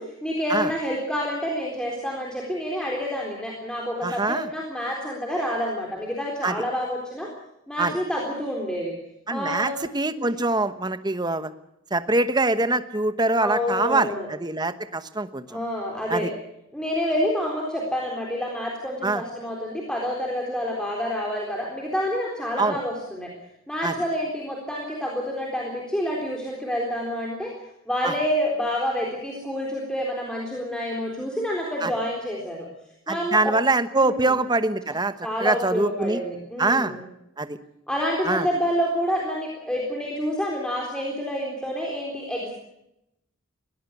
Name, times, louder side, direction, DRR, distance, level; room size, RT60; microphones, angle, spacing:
voice 1, 0.0-7.3 7.7-8.9 9.3-9.7 10.2-10.3 13.4-14.3 15.5-16.3 16.7-23.3 23.7-27.5 27.9-32.7 33.1-33.6 34.0-34.3 35.2-37.0 37.9-42.5, equal, 5° left, -2 dB, 3.9 m, -28 dB
voice 2, 4.0-4.5 6.4-6.6 7.8-7.9 9.3-11.5 11.9-15.4 16.1-16.3 19.0-19.2 22.6-22.8 23.8-23.9 28.0-28.1 31.8-31.9 33.1-35.1 35.4-36.2 36.6-37.0 37.4-37.6 38.2-38.5, right 2 dB, 20° right, 11 dB, 1.1 m, -24 dB
21.0 x 17.0 x 8.3 m, 0.82 s
head